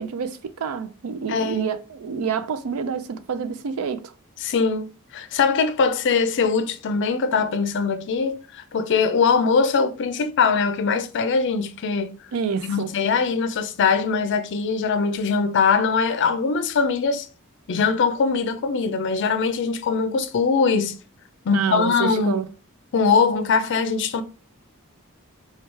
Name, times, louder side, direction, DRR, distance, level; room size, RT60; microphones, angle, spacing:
voice 1, 0.0-4.1 12.3-12.9 21.5-22.5, right 6 dB, 85° right, 0.4 m, -28 dB
voice 2, 1.3-1.7 4.4-4.9 5.1-12.2 12.6-17.3 17.7-21.0 21.4-22.4 22.9-24.2, left 5 dB, 55° left, 0.4 m, -22 dB
4.5 x 2.3 x 3.0 m
head